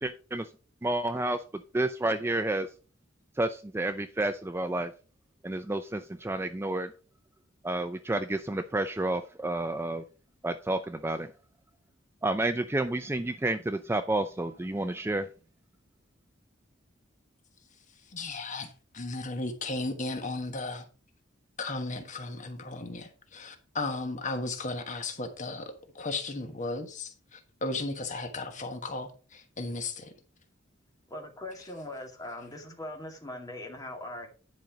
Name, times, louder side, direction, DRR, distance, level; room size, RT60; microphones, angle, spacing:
voice 1, 0.0-0.5 0.8-1.4 1.7-2.7 3.4-4.9 5.4-6.9 7.6-10.0 10.4-11.3 12.2-15.3, right 2 dB, 10° right, 0.4 m, -30 dB
voice 2, 18.1-20.8 21.6-30.1, left 2 dB, 40° left, 1.3 m, -35 dB
voice 3, 31.1-34.3, left 1 dB, 20° left, 2.3 m, -40 dB
10.5 x 5.3 x 5.0 m
head